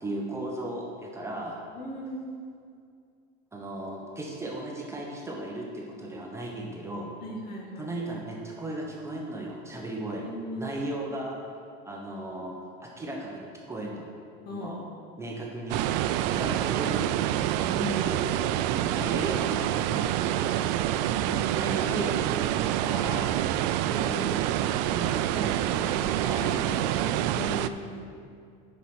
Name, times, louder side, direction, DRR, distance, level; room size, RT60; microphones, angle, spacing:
voice 1, 0.0-1.6 3.5-7.1 7.8-10.2 10.6-11.4 11.9-14.1 14.5-14.8 15.2-15.8 16.3-17.1 17.5-18.4 18.7-20.5 21.2-22.3 22.8-23.3 23.9-24.3 24.9-27.2, right 1 dB, 15° right, -1 dB, 1.0 m, -36 dB
voice 2, 1.7-2.2 7.2-7.9 10.0-10.7 14.4-14.8 16.3-16.6 21.0-21.4 27.3-28.0, left 1 dB, 50° left, -1 dB, 1.9 m, -38 dB
sound 1, 15.7-27.7, right 12 dB, 80° right, 0.4 m, -27 dB
8.0 x 5.8 x 6.1 m, 2.3 s
cardioid pair, 135°, 21 cm